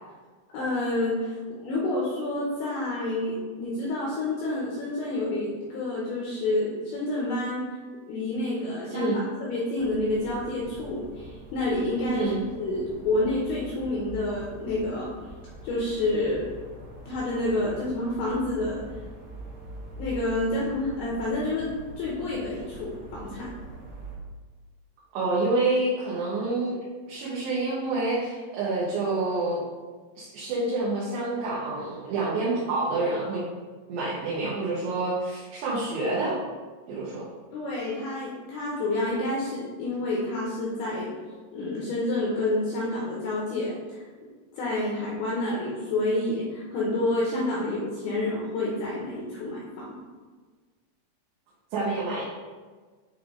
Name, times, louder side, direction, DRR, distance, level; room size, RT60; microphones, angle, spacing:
voice 1, 0.5-7.7 8.1-12.3 12.6-15.3 15.6-16.5 17.1-19.0 20.0-23.5 37.5-41.1 41.5-44.0 44.5-50.0, left 2 dB, 80° left, -5 dB, 2.4 m, -29 dB
sound 1, 9.8-24.2, right 1 dB, 55° right, 2.2 m, -44 dB
voice 2, 25.1-26.8 27.1-29.6 30.2-33.4 33.9-36.4 36.9-37.2 51.7-52.2, right 2 dB, 70° right, -8 dB, 2.9 m, -27 dB
8.6 x 3.4 x 3.7 m, 1.4 s
omnidirectional pair, 5.7 m